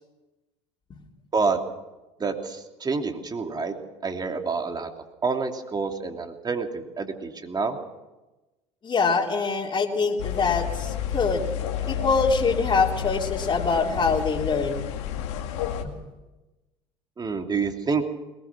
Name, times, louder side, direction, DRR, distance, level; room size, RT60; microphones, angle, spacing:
voice 1, 2.2-3.7 4.0-4.9 5.2-7.8 17.2-18.0, right 4 dB, 25° right, 4 dB, 2.9 m, -27 dB
voice 2, 8.8-11.4 11.9-14.9 15.8-15.9, left 4 dB, 30° left, -1 dB, 3.4 m, -24 dB
sound 1, 10.2-15.8, left 9 dB, 75° left, 2.1 m, -30 dB
21.5 x 19.5 x 6.1 m, 1.1 s
hypercardioid pair, 70°, 15 cm